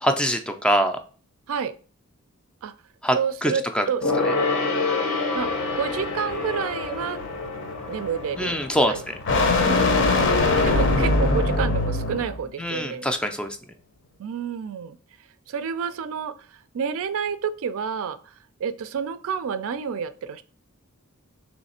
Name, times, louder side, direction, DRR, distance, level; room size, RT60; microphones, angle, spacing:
voice 1, 0.0-1.0 3.0-3.9 4.2-4.3 8.4-8.9 12.6-13.5, equal, 5° left, 6 dB, 0.3 m, -23 dB
voice 2, 3.1-4.0 5.3-5.5 5.8-7.2 7.9-8.6 8.9-9.0 9.6-13.1 14.2-15.0 15.5-16.4 16.7-18.2 18.6-20.4, right 6 dB, 65° right, 12 dB, 0.4 m, -29 dB
Gong, 4.0-9.9 10.2-10.3, left 3 dB, 80° left, 1.0 m, -28 dB
sound 1, 5.4-12.4, left 2 dB, 55° left, 0.7 m, -23 dB
3.2 x 3.1 x 4.2 m, 0.40 s
head